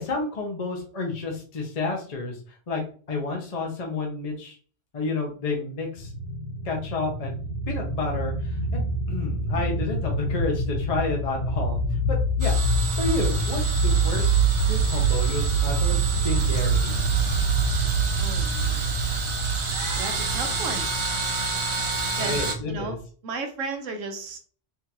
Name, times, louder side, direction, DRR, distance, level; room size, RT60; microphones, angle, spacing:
voice 1, 0.0-2.4 2.7-2.8 3.1-4.6 4.9-6.1 6.6-7.4 7.7-11.8 12.1-12.6 13.0-14.3 14.7-17.0 22.2-23.0, left 3 dB, 40° left, 0 dB, 0.7 m, -30 dB
sound 1, 6.0-23.0, right 3 dB, 55° left, 2.0 m, -26 dB
sound 2, 12.4-22.5, right 3 dB, 50° right, 0.3 m, -30 dB
voice 2, 18.2-18.9 20.0-20.9 22.2-24.4, right 4 dB, 80° right, 5 dB, 1.1 m, -34 dB
3.7 x 2.4 x 2.8 m, 0.41 s
omnidirectional pair, 1.3 m